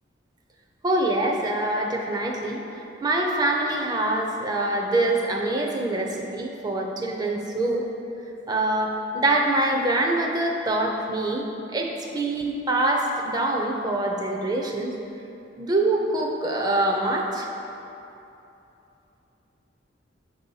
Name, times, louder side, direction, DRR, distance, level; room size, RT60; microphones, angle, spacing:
voice 1, 0.8-2.6 3.0-7.9 8.5-14.9 15.6-17.5, right 2 dB, 20° right, 1 dB, 0.4 m, -25 dB
6.4 x 2.7 x 5.4 m, 2.9 s
head